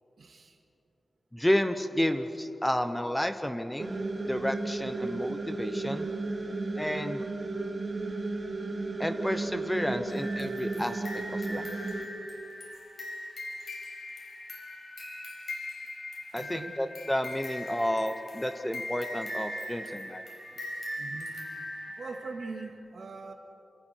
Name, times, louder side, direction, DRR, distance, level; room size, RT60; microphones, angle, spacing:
voice 1, 0.2-0.6 16.4-16.8 19.9-20.0 20.5-20.6 21.0-21.3 21.9-23.3, right 3 dB, 60° right, 3 dB, 2.3 m, -42 dB
voice 2, 1.3-4.0 4.3-6.1 6.7-7.3 9.0-11.0 11.3-11.7 16.3-20.2, equal, 5° left, 8 dB, 0.9 m, -31 dB
sound 1, 3.8-12.0, right 2 dB, 40° right, 2.4 m, -34 dB
sound 2, 10.1-22.7, left 1 dB, 60° left, 5.7 m, -40 dB
28.0 x 28.0 x 4.6 m, 2.9 s
wide cardioid pair, 145°, 0 cm